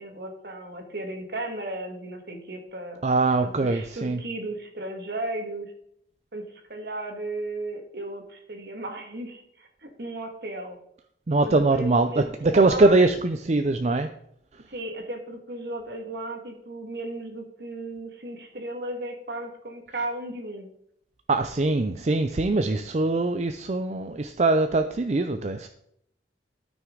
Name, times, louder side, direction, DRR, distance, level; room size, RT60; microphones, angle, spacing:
voice 1, 0.0-3.0 3.4-5.7 6.3-10.8 11.4-13.0 14.7-20.7, right 2 dB, 65° right, 4 dB, 1.8 m, -35 dB
voice 2, 3.0-4.2 11.3-14.1 21.3-25.7, right 2 dB, 40° right, 7 dB, 0.5 m, -22 dB
12.5 x 6.0 x 3.8 m, 0.72 s
head